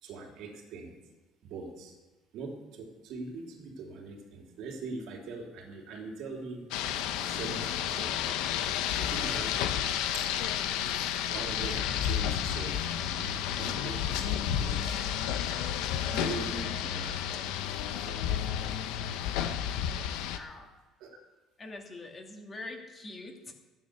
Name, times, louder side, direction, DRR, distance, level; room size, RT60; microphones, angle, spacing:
voice 1, 0.0-0.9 1.4-1.9 2.3-6.7 7.2-8.1 8.9-9.8 10.1-10.3 10.7-12.8 13.1-15.1 16.1-16.6 17.0-18.3 21.0-21.2, right 3 dB, 65° right, 1 dB, 3.2 m, -42 dB
Rain, 6.7-20.4, left 10 dB, 90° left, 1.0 m, -31 dB
voice 2, 16.1-17.1 20.1-20.7 21.6-23.5, left 2 dB, 20° left, 2 dB, 2.0 m, -44 dB
14.5 x 9.6 x 6.8 m, 1.2 s
cardioid pair, 155°, 0 cm